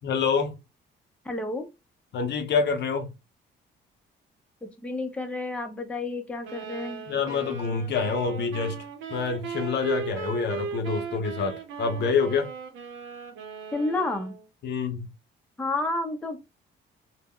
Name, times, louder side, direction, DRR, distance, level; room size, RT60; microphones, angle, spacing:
voice 1, 0.0-0.6 2.1-3.1 7.1-8.8 9.1-12.5 14.6-15.1, left 5 dB, 60° left, 0.6 m, -27 dB
voice 2, 1.2-1.7 4.8-7.0 13.7-14.3 15.6-16.4, left 2 dB, 5° left, 0.5 m, -30 dB
sound 1, 6.4-14.4, right 6 dB, 80° right, 0.7 m, -38 dB
2.2 x 2.0 x 3.6 m
cardioid pair, 90°, 20 cm